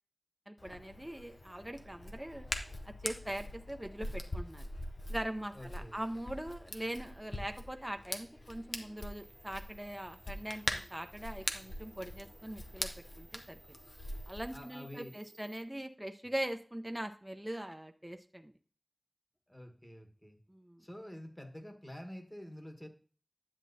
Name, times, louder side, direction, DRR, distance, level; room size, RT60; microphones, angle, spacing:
voice 1, 0.5-2.5 2.9-4.7 5.1-12.9 13.2-13.8 14.3-18.5 20.5-20.8, right 1 dB, 15° right, 6 dB, 0.6 m, -41 dB
Hands, 0.6-14.6, left 1 dB, 70° left, 0.8 m, -43 dB
voice 2, 5.5-6.0 14.5-15.2 19.5-20.4 20.8-22.9, left 1 dB, 20° left, 4 dB, 1.3 m, -48 dB
sound 1, 9.0-15.6, right 2 dB, 80° right, 0.8 m, -60 dB
10.0 x 7.3 x 2.7 m, 0.40 s
wide cardioid pair, 45°, 0 cm